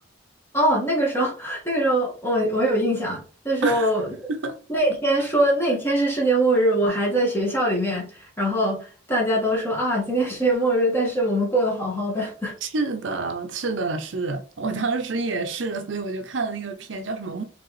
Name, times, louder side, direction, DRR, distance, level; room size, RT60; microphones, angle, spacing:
voice 1, 0.5-4.1 4.7-12.5, right 1 dB, 10° left, 1.7 m, -22 dB
voice 2, 12.6-17.4, right 3 dB, 70° right, 0.6 m, -28 dB
4.8 x 3.4 x 3.1 m
head